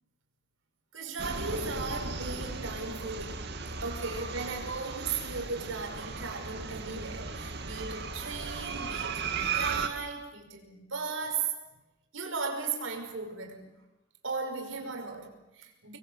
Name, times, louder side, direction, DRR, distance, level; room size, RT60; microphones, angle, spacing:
voice 1, 0.9-3.5 3.8-11.5 12.1-13.7 14.2-16.0, right 4 dB, 80° right, 3 dB, 5.5 m, -36 dB
sound 1, 1.2-9.9, right 5 dB, 60° right, 2.3 m, -36 dB
26.5 x 22.0 x 8.2 m, 0.97 s
head